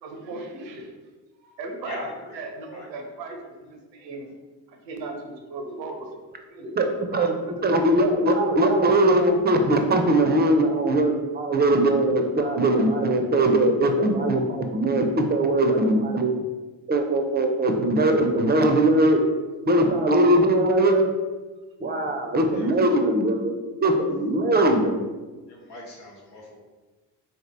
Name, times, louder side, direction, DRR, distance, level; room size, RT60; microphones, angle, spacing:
voice 1, 0.0-0.9 1.4-2.0 2.3-4.3 4.7-6.1 6.5-6.8 7.1-7.5, right 3 dB, 85° right, 4 dB, 0.6 m, -37 dB
voice 2, 1.8-2.4 2.7-3.1 22.5-22.7 25.5-26.6, left 2 dB, 80° left, -4 dB, 1.0 m, -40 dB
voice 3, 7.1-16.3 16.9-19.2 19.6-21.1 21.8-23.5 23.8-25.0, right 1 dB, 20° right, 4 dB, 0.4 m, -20 dB
3.7 x 2.7 x 3.3 m, 1.2 s
figure-of-eight pair, 45°, 50 cm